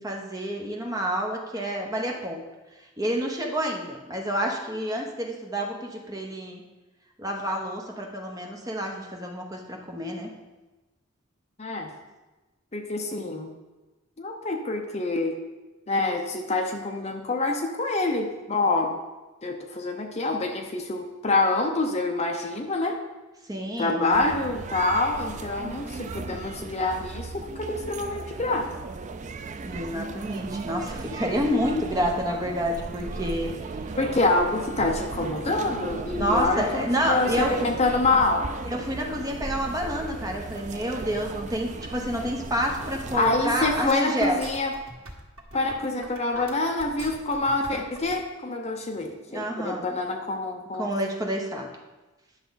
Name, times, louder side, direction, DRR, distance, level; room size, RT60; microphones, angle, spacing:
voice 1, 0.0-2.5 3.0-6.6 7.2-10.3 23.5-24.2 29.6-33.8 36.2-37.6 38.6-44.4 49.3-50.0 50.8-51.7, equal, 15° right, 1 dB, 1.0 m, -29 dB
voice 2, 11.6-11.9 12.7-13.5 14.2-15.4 15.9-19.0 19.4-23.0 23.8-28.7 34.0-38.5 43.1-44.7 45.5-50.9, left 2 dB, 30° left, 3 dB, 0.7 m, -26 dB
sound 1, 24.1-43.9, right 3 dB, 35° right, 0.4 m, -36 dB
sound 2, 42.8-48.2, right 1 dB, 85° right, 1.6 m, -42 dB
10.5 x 6.6 x 4.0 m, 1.1 s
head